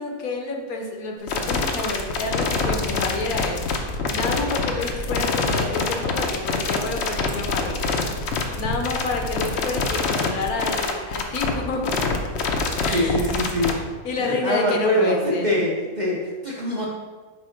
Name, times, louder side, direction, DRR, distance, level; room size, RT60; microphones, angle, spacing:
voice 1, 0.0-8.0 8.6-12.0 12.8-13.3 14.0-15.5, left 3 dB, 75° left, 1 dB, 1.3 m, -29 dB
sound 1, 1.3-13.7, left 4 dB, 60° left, 0.8 m, -25 dB
voice 2, 12.9-13.8 14.2-16.9, equal, 40° right, -4 dB, 0.6 m, -23 dB
5.2 x 3.6 x 5.0 m, 1.4 s
omnidirectional pair, 1.5 m